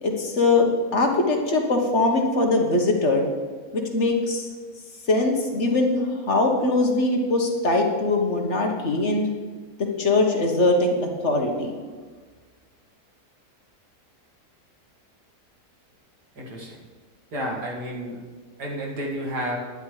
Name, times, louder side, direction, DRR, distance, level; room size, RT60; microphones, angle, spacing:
voice 1, 0.0-3.2 3.7-4.5 5.1-9.3 10.0-11.7, left 2 dB, 45° left, 1 dB, 1.6 m, -22 dB
voice 2, 16.4-16.8 17.3-18.2 18.6-19.6, equal, 80° right, -2 dB, 2.7 m, -31 dB
10.5 x 10.5 x 4.9 m, 1.4 s
omnidirectional pair, 1.7 m